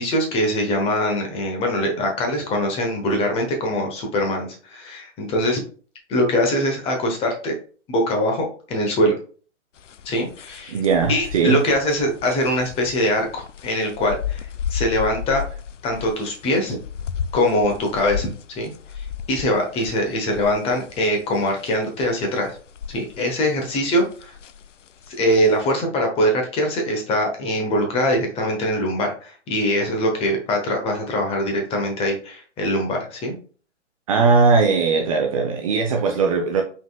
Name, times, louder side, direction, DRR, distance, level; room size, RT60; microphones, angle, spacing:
voice 1, 0.0-5.6 6.1-7.5 7.9-9.1 10.0-10.8 11.1-15.4 15.8-16.8 17.3-18.3 18.6-22.5 22.9-24.3 25.1-33.3, equal, 15° left, 0.9 m, -22 dB
sound 1, 9.8-23.2 23.5-25.6, left 8 dB, 85° left, 0.5 m, -34 dB
voice 2, 10.7-11.6 34.1-36.6, right 4 dB, 30° right, 0.5 m, -19 dB
4.7 x 4.0 x 2.3 m
hypercardioid pair, 130°, 36 cm